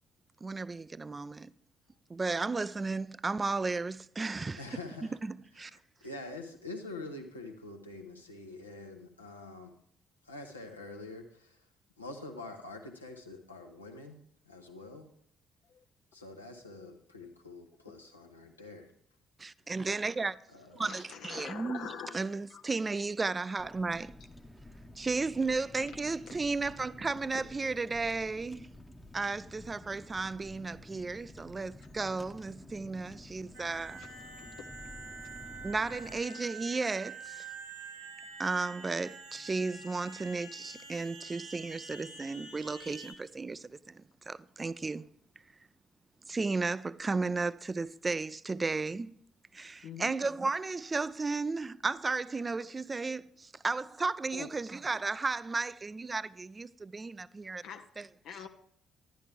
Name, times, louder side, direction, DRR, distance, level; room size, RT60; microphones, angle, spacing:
voice 1, 0.4-1.5 2.1-4.6 5.3-5.7 19.4-20.4 20.7-24.1 25.0-28.7 29.1-34.0 35.6-37.5 38.4-45.1 46.3-49.1 49.5-57.6 58.0-58.1, right 3 dB, 25° right, 0.4 m, -34 dB
voice 2, 4.6-5.2 5.6-9.7 10.2-11.7 12.0-14.2 14.4-15.1 16.1-18.9 20.5-21.0, left 2 dB, 90° left, 0.9 m, -46 dB
voice 3, 20.8-22.6 34.0-34.1 34.6-34.7 49.8-50.1 54.3-54.5 57.6-57.9 58.2-58.5, left 7 dB, 60° left, 0.5 m, -44 dB
Car, 23.6-36.2, left 2 dB, 10° left, 0.8 m, -51 dB
sound 1, 33.5-43.1, right 4 dB, 80° right, 1.6 m, -47 dB
11.0 x 10.5 x 3.4 m
figure-of-eight pair, 45°, 0 cm